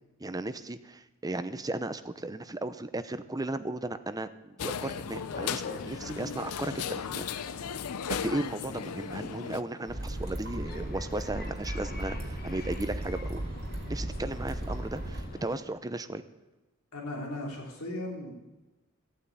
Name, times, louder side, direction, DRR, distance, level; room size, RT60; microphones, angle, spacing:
voice 1, 0.2-7.3 8.1-13.4 13.9-16.2, right 2 dB, 15° right, 11 dB, 0.7 m, -35 dB
sound 1, 4.6-9.6, left 7 dB, 90° left, 0.6 m, -36 dB
sound 2, 4.8-15.6, left 2 dB, 45° left, 1.4 m, -46 dB
sound 3, 9.9-15.2, right 1 dB, 45° right, 2.6 m, -36 dB
voice 2, 16.9-18.3, left 1 dB, 70° left, 0 dB, 3.3 m, -37 dB
14.0 x 9.0 x 8.3 m, 1.1 s
head